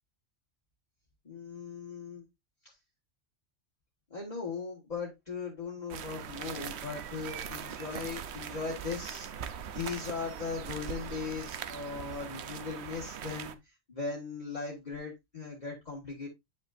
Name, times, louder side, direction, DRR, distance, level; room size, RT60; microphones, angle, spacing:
voice 1, 1.2-2.3 2.6-2.7 4.1-13.5 13.9-16.3, left 4 dB, 35° left, 1.7 m, -38 dB
sound 1, 5.9-13.6, right 8 dB, 70° right, 0.9 m, -41 dB
9.9 x 5.2 x 2.5 m
omnidirectional pair, 1.2 m